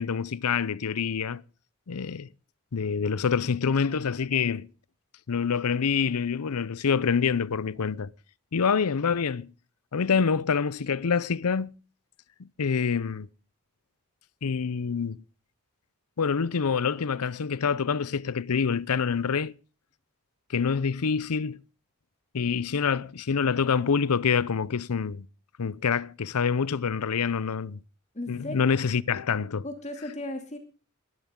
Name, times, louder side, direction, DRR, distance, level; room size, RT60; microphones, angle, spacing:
voice 1, 0.0-1.4 1.9-2.3 2.7-4.7 5.3-8.1 8.5-9.5 9.9-11.7 12.4-13.3 14.4-15.2 16.2-19.5 20.5-21.6 22.3-25.3 25.6-27.8 28.3-29.6, left 6 dB, 90° left, 0.6 m, -26 dB
voice 2, 28.1-28.8 29.6-30.6, left 1 dB, 30° left, 2.5 m, -36 dB
19.5 x 12.5 x 3.7 m
head